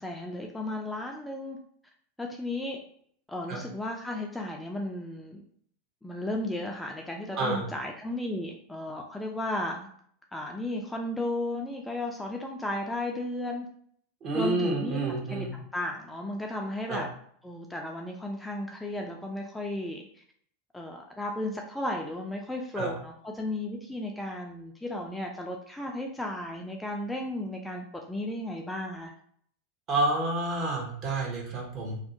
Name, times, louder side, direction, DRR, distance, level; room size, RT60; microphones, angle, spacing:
voice 1, 0.0-1.6 2.2-2.8 3.3-5.4 6.0-9.9 10.3-13.7 14.3-17.1 17.4-20.2 20.7-29.1, left 1 dB, 5° left, 0 dB, 0.3 m, -34 dB
voice 2, 14.2-15.5 16.9-17.0 22.8-22.9 29.9-32.0, right 2 dB, 40° right, -2 dB, 0.9 m, -29 dB
2.5 x 2.0 x 2.5 m, 0.62 s
hypercardioid pair, 90°, 0 cm